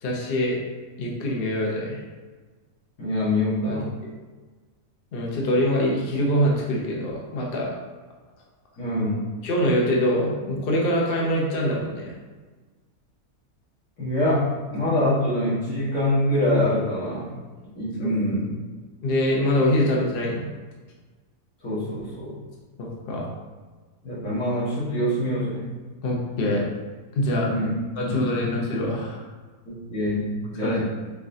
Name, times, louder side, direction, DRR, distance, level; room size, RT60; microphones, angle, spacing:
voice 1, 0.0-0.6 1.0-2.0 3.6-3.7 4.0-4.1 5.1-7.7 9.4-12.1 19.0-20.5 22.8-23.3 26.0-26.6 27.1-27.5 28.0-29.2 30.6-30.8, equal, 50° left, -2 dB, 0.8 m, -24 dB
voice 2, 3.0-3.9 8.8-9.3 14.0-17.3 17.8-18.5 21.6-22.4 24.0-25.6 27.5-27.7 28.0-28.4 29.7-30.8, left 1 dB, 75° left, -9 dB, 2.1 m, -25 dB
4.8 x 3.6 x 2.6 m, 1.4 s
omnidirectional pair, 1.6 m